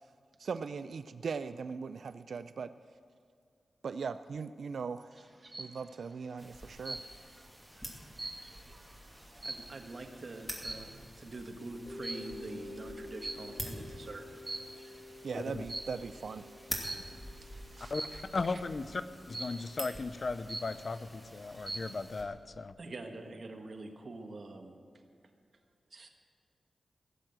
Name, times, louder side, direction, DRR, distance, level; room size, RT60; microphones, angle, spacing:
voice 1, 0.4-2.7 3.8-5.3 5.6-7.0 15.2-16.5, right 5 dB, 80° right, 12 dB, 0.3 m, -39 dB
sound 1, 5.2-5.8 6.8-7.4 7.8-10.0 10.6-11.0 12.0-12.4 13.2-13.8 14.3-15.0 15.7-16.1 16.8-17.2 17.9-18.4 19.3-19.8 20.2-20.3 20.5-21.1 21.5-22.0, right 2 dB, 25° right, 1.2 m, -42 dB
sound 2, 6.4-22.2, equal, ahead, 2.4 m, -48 dB
voice 2, 9.4-14.2 17.4-18.2 18.5-18.6 22.8-24.8 25.9-26.1, right 2 dB, 55° right, 4 dB, 1.3 m, -45 dB
Mallet percussion, 11.9-20.5, left 2 dB, 25° left, 2.6 m, -50 dB
voice 3, 15.3-15.6 17.9-18.0 18.3-19.0 19.3-22.7, left 3 dB, 50° left, 13 dB, 0.5 m, -36 dB
16.5 x 7.5 x 7.9 m, 2.3 s
wide cardioid pair, 105°, 0 cm